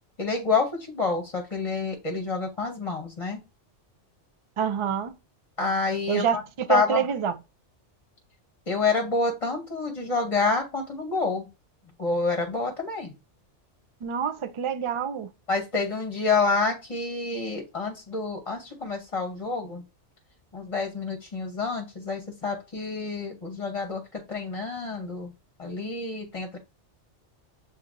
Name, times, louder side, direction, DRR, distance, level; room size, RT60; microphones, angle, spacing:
voice 1, 0.2-3.4 5.6-6.4 6.7-7.0 8.7-11.5 12.0-13.1 15.5-19.8 20.5-25.3 25.6-26.6, left 4 dB, 35° left, 0.9 m, -28 dB
voice 2, 4.6-5.1 6.1-7.3 14.0-15.3, right 8 dB, 50° right, 0.3 m, -27 dB
7.1 x 2.7 x 2.5 m
omnidirectional pair, 1.2 m